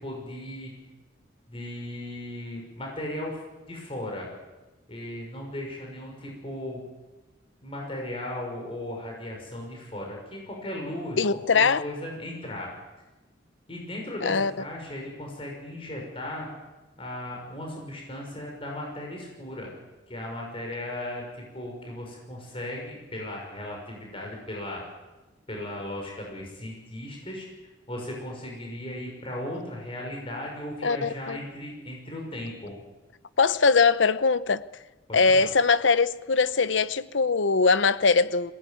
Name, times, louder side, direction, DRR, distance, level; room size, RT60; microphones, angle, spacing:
voice 1, 0.0-0.7 1.5-3.4 3.7-4.3 4.9-6.8 7.6-11.2 11.5-12.7 13.7-16.5 17.0-19.7 20.1-24.8 25.5-27.5 27.9-32.7 35.1-35.5, left 1 dB, 30° left, 6.0 m, -36 dB
voice 2, 11.2-11.8 14.2-14.5 30.8-31.4 33.4-34.6 35.1-38.5, left 4 dB, 80° left, 0.8 m, -21 dB
21.5 x 18.5 x 9.3 m
head